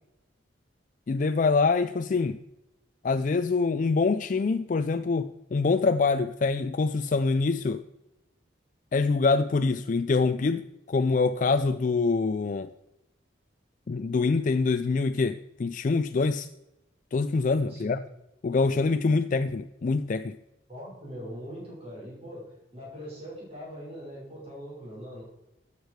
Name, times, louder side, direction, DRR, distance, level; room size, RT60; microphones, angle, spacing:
voice 1, 1.1-2.4 3.0-7.8 8.9-12.7 13.9-16.5 17.1-18.0 18.4-20.4, left 4 dB, 40° left, 10 dB, 0.4 m, -25 dB
voice 2, 20.7-25.2, equal, 30° right, -6 dB, 5.2 m, -41 dB
13.0 x 8.3 x 4.7 m, 0.94 s
head